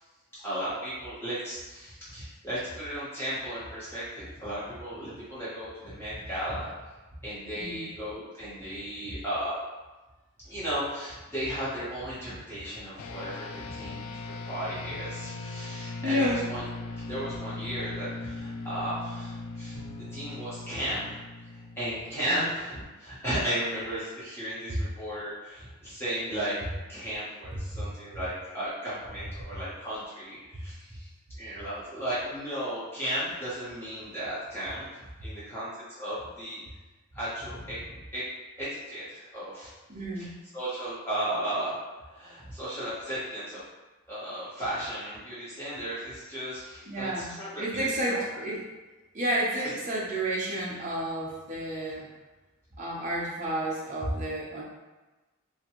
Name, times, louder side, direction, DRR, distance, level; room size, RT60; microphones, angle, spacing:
voice 1, 0.3-6.9 7.2-9.6 10.4-16.6 17.0-19.8 20.1-21.2 21.5-26.6 26.9-31.1 31.4-36.6 37.1-38.2 38.6-39.7 40.1-40.3 40.5-43.6 44.1-48.2, right 1 dB, 10° left, -12 dB, 1.3 m, -35 dB
sound 1, 13.0-22.7, left 3 dB, 85° left, 0.3 m, -39 dB
voice 2, 16.0-16.4 22.3-22.5 24.7-24.8 27.7-27.8 39.9-40.3 46.9-48.6 49.1-52.1 52.8-54.6, equal, 35° right, -5 dB, 0.7 m, -31 dB
Bowed string instrument, 19.7-22.4, left 1 dB, 30° left, 0.6 m, -53 dB
2.9 x 2.5 x 2.9 m, 1.2 s
head